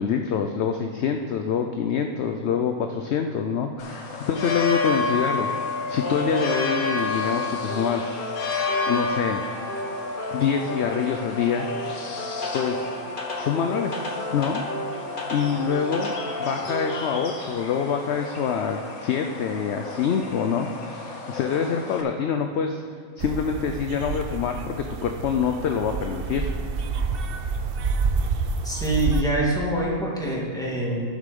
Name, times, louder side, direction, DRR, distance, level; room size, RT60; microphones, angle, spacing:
voice 1, 0.0-5.5 5.9-8.4 8.9-9.8 10.3-11.7 12.5-12.9 13.4-13.9 14.3-14.6 15.3-16.1 16.4-22.8 23.2-26.5, left 7 dB, 65° left, 5 dB, 0.7 m, -26 dB
sound 1, 3.8-22.0, left 3 dB, 80° left, 1.7 m, -31 dB
sound 2, 6.0-17.1, left 1 dB, 40° left, 1.3 m, -33 dB
sound 3, 23.2-29.2, right 4 dB, 60° right, 0.6 m, -28 dB
voice 2, 28.6-31.0, right 1 dB, ahead, -6 dB, 2.2 m, -25 dB
10.5 x 7.6 x 5.3 m, 2.4 s
omnidirectional pair, 1.5 m